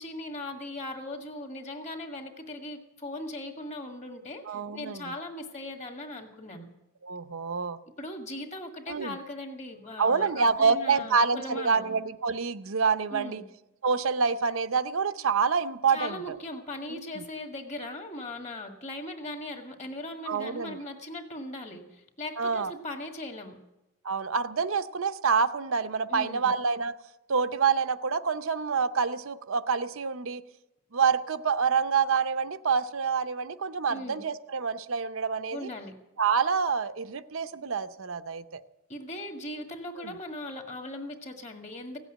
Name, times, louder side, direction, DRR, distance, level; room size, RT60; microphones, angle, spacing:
voice 1, 0.0-6.7 8.0-11.9 13.1-13.4 15.9-23.6 26.1-26.5 33.9-34.2 35.5-35.9 38.9-42.0, left 1 dB, 35° left, 4 dB, 1.8 m, -39 dB
voice 2, 4.5-5.1 7.0-7.8 8.9-9.2 10.0-13.4 13.8-16.4 16.9-17.2 20.3-20.8 22.4-22.7 24.0-26.9 27.3-30.4 30.9-35.7 36.2-38.6 40.0-40.1, right 5 dB, 85° right, 11 dB, 0.7 m, -27 dB
16.5 x 8.2 x 10.0 m, 0.96 s
head